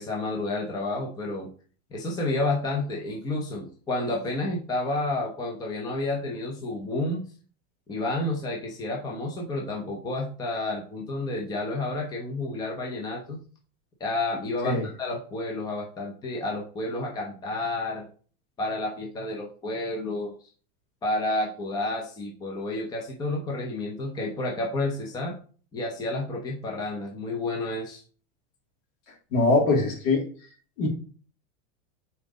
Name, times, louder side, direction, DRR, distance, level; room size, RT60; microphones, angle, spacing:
voice 1, 0.0-1.5 1.9-7.2 7.9-13.4 14.0-18.1 18.6-20.3 21.0-25.3 25.7-28.0, left 2 dB, 10° left, 0 dB, 0.7 m, -30 dB
voice 2, 29.3-30.2 30.8-30.9, left 3 dB, 65° left, 0 dB, 3.2 m, -22 dB
5.7 x 4.0 x 4.9 m, 0.40 s
supercardioid pair, 170°, 37 cm